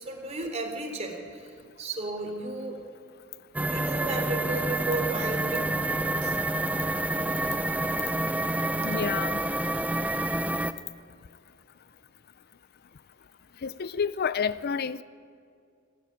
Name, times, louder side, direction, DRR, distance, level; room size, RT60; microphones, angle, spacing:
voice 1, 0.0-2.8 3.7-6.4, right 2 dB, 30° right, 4 dB, 3.5 m, -34 dB
sound 1, 3.5-10.7, right 1 dB, 5° right, 0.6 m, -28 dB
voice 2, 8.8-9.4 13.6-15.0, left 6 dB, 45° left, 16 dB, 0.5 m, -29 dB
26.5 x 15.0 x 9.4 m, 2.4 s
head